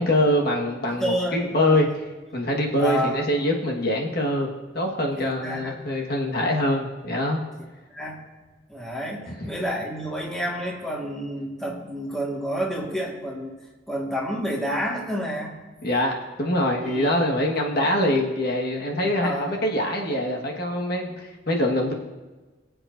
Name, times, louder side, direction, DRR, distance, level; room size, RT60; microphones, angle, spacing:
voice 1, 0.0-1.9 2.3-4.5 4.7-7.4 15.8-21.9, left 1 dB, 55° left, 0 dB, 1.5 m, -24 dB
voice 2, 1.0-1.9 2.8-3.2 5.2-5.8 7.9-8.2 8.7-13.5 13.9-15.6 16.8-17.4 17.8-17.9 19.2-19.6, equal, 5° left, -3 dB, 1.7 m, -29 dB
23.0 x 7.8 x 2.6 m, 1.2 s
head